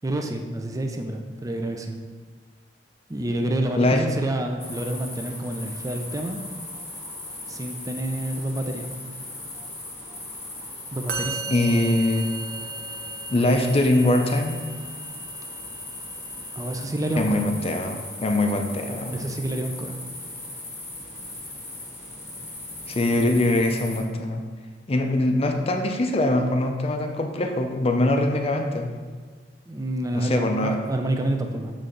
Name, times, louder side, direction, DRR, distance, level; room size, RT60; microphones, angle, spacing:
voice 1, 0.0-2.0 3.1-6.4 7.5-8.9 10.9-11.5 16.5-17.4 19.1-20.0 29.7-31.7, right 1 dB, 20° right, 4 dB, 0.4 m, -28 dB
sound 1, 4.6-24.0, left 2 dB, 15° left, 1.0 m, -38 dB
Musical instrument, 11.1-18.4, right 4 dB, 60° right, 0.7 m, -38 dB
voice 2, 11.5-12.3 13.3-14.6 17.2-19.2 22.9-24.4 24.9-28.9 30.1-30.8, left 1 dB, 35° left, 4 dB, 0.5 m, -22 dB
7.5 x 3.3 x 3.8 m, 1.5 s
head